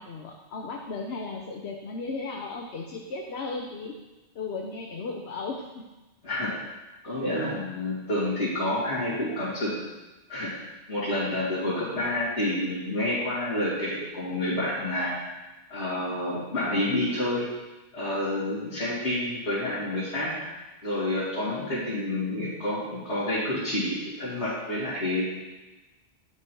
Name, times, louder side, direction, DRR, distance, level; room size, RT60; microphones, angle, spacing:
voice 1, 0.0-3.9 4.3-5.8 11.7-11.9 21.5-22.0, left 3 dB, 70° left, 1 dB, 1.0 m, -36 dB
voice 2, 6.2-6.5 7.0-9.8 10.3-10.5 10.9-15.1 15.7-17.5 17.9-20.4 20.8-25.2, left 1 dB, 85° left, -11 dB, 3.0 m, -29 dB
11.0 x 5.9 x 4.6 m, 1.1 s
omnidirectional pair, 1.1 m